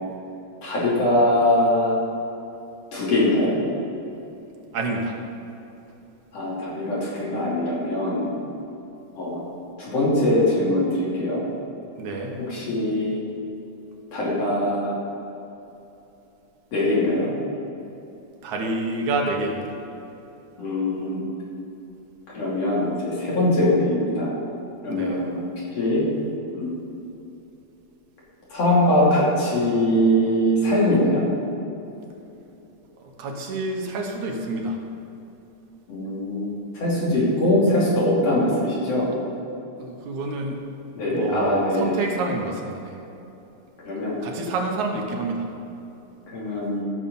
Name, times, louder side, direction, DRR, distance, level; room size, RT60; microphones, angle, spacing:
voice 1, 0.6-2.0 2.9-3.6 6.3-8.4 9.2-9.4 9.8-11.4 12.4-13.3 14.1-15.0 16.7-17.3 20.6-21.3 22.3-24.3 24.8-25.4 25.7-26.1 26.5-26.7 28.5-31.2 35.9-39.1 41.0-42.0 43.8-44.2 46.3-46.8, left 1 dB, 55° left, -7 dB, 3.9 m, -22 dB
voice 2, 4.7-5.2 12.0-12.4 18.4-19.7 24.9-25.2 33.0-34.8 39.8-40.6 41.1-43.0 44.2-45.5, right 2 dB, 75° right, 1 dB, 2.5 m, -28 dB
15.5 x 6.8 x 5.4 m, 2.9 s
omnidirectional pair, 3.5 m